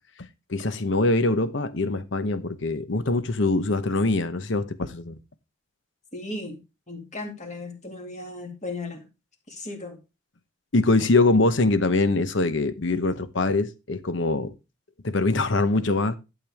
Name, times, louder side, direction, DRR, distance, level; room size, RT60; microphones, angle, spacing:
voice 1, 0.5-5.2 10.7-14.5 15.0-16.2, left 2 dB, 70° left, 0.9 m, -23 dB
voice 2, 6.1-6.6 6.9-9.0 9.5-10.0, left 2 dB, 35° left, 2.3 m, -36 dB
12.0 x 6.8 x 3.5 m
head